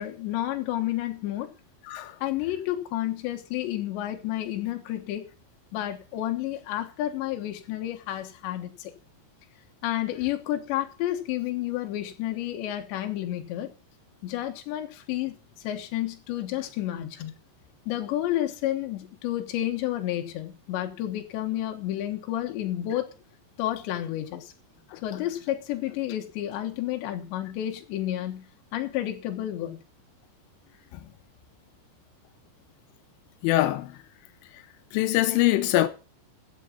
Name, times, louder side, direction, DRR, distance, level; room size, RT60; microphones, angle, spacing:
voice 1, 0.0-1.5 2.2-5.3 5.7-8.9 9.8-13.7 14.2-15.4 15.6-17.3 17.9-23.1 23.6-24.5 25.0-28.5 28.7-29.8, left 13 dB, 75° left, 3.5 m, -30 dB
voice 2, 33.4-34.0 34.9-35.9, left 15 dB, 90° left, 3.3 m, -23 dB
15.0 x 7.3 x 5.5 m
omnidirectional pair, 5.5 m